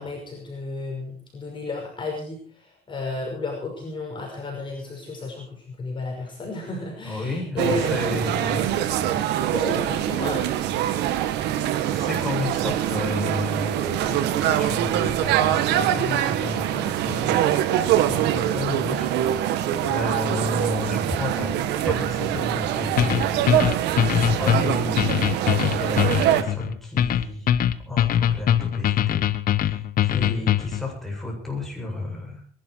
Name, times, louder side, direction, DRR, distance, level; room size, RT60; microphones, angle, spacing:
voice 1, 0.0-2.4 2.9-7.9 9.5-11.1 30.1-30.5, left 2 dB, 30° left, -1 dB, 5.7 m, -33 dB
voice 2, 7.0-8.6 9.0-9.3 9.6-9.9 11.9-17.5 17.9-23.9 24.2-25.1 25.6-27.5 27.9-29.3 29.6-32.4, left 2 dB, ahead, -1 dB, 7.8 m, -32 dB
sound 1, 7.6-26.4, right 11 dB, 85° right, 1.5 m, -24 dB
sound 2, 23.0-30.9, left 10 dB, 55° left, 1.1 m, -22 dB
22.0 x 12.0 x 4.6 m, 0.40 s
cardioid pair, 110°, 17 cm